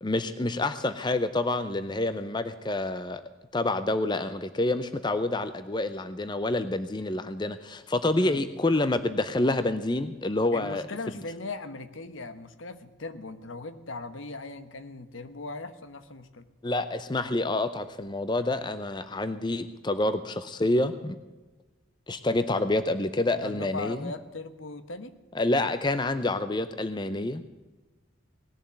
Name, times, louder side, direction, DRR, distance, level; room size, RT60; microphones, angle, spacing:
voice 1, 0.0-3.2 3.5-11.2 16.6-21.2 22.1-24.1 25.3-27.4, left 2 dB, 20° left, 11 dB, 0.6 m, -28 dB
voice 2, 8.1-8.4 10.5-16.5 23.4-25.2, left 3 dB, 75° left, 11 dB, 1.1 m, -39 dB
18.5 x 7.2 x 9.3 m, 1.2 s
head